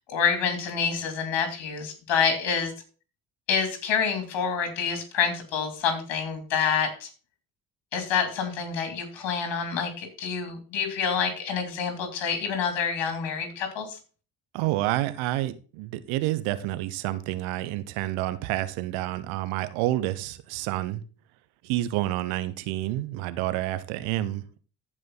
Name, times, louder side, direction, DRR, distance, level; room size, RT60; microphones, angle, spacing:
voice 1, 0.1-2.7 3.5-7.1 7.9-14.0, left 6 dB, 60° left, 6 dB, 3.2 m, -27 dB
voice 2, 14.5-21.0 21.6-24.6, right 15 dB, 80° right, 13 dB, 1.1 m, -29 dB
14.5 x 5.1 x 3.9 m, 0.36 s
hypercardioid pair, 60°, 48 cm